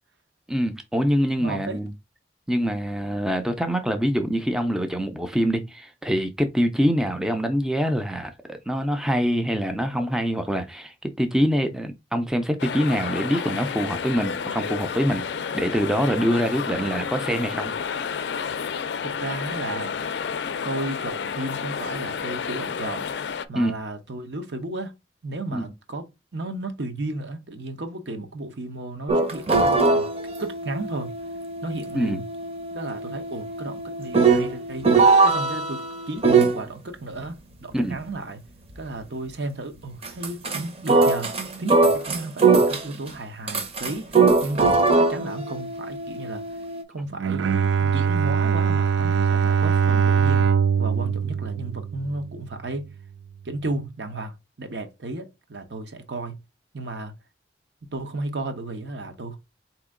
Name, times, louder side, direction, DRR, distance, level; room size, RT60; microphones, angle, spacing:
voice 1, 0.5-1.9 2.5-15.2 15.5-17.7 23.5-23.7 25.5-25.7 31.9-32.2 37.7-38.0, equal, 5° right, 0.4 m, -24 dB
voice 2, 1.4-1.8 19.0-20.0 20.6-23.1 23.5-24.9 25.2-30.1 30.4-31.1 31.6-32.2 32.7-34.9 35.2-38.4 38.8-46.4 46.9-52.9 53.4-56.4 56.7-57.1 57.9-59.4, right 2 dB, 75° right, 0.9 m, -34 dB
sound 1, 12.6-23.5, left 6 dB, 75° left, 0.4 m, -30 dB
sound 2, 29.1-36.6 40.0-40.6 40.9-43.1 43.5-46.8, right 4 dB, 35° right, 0.7 m, -21 dB
Bowed string instrument, 47.1-52.4, right 7 dB, 90° right, 0.4 m, -22 dB
4.3 x 2.9 x 3.6 m
head